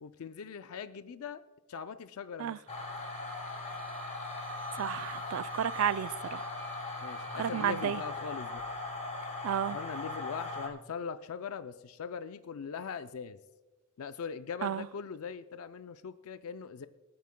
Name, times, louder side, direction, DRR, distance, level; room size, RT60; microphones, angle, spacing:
voice 1, 0.0-1.4 1.7-2.6 7.0-8.6 9.7-13.4 14.0-16.9, left 6 dB, 90° left, 0.4 m, -41 dB
sound 1, 2.7-10.7, left 2 dB, 35° left, 1.9 m, -39 dB
Wind instrument woodwind instrument, 3.0-8.2, right 1 dB, 10° left, 2.3 m, -49 dB
voice 2, 4.7-6.5 7.3-8.0 9.4-9.8 14.6-14.9, right 9 dB, 75° right, 0.3 m, -32 dB
27.5 x 9.3 x 2.2 m
head